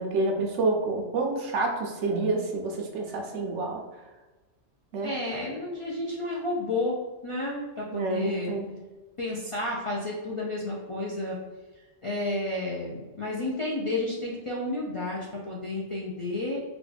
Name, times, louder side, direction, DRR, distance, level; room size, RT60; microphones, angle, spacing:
voice 1, 0.0-3.8 4.9-5.1 7.9-8.7, right 3 dB, 75° right, 1 dB, 1.0 m, -28 dB
voice 2, 5.0-8.6 9.2-11.4 12.0-16.6, left 2 dB, 45° left, -5 dB, 0.4 m, -31 dB
4.0 x 2.3 x 3.3 m, 1.2 s
omnidirectional pair, 1.2 m